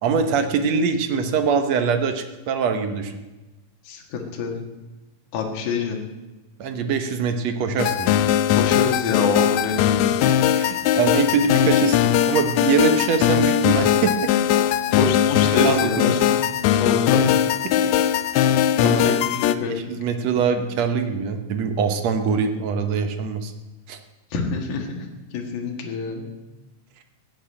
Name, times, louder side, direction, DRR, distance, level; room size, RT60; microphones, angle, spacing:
voice 1, 0.0-3.2 6.6-8.2 10.3-14.3 15.5-16.2 17.6-17.9 18.8-19.2 19.7-23.5 23.9-24.0, right 5 dB, 65° right, 7 dB, 1.9 m, -23 dB
voice 2, 3.8-4.6 5.3-6.0 8.5-10.2 14.9-16.3 16.7-17.3 18.8-19.8 24.3-26.3, left 5 dB, 65° left, 1 dB, 3.1 m, -26 dB
sound 1, 7.8-19.6, left 10 dB, 85° left, 1.5 m, -20 dB
15.5 x 8.2 x 8.9 m, 1.1 s
omnidirectional pair, 3.9 m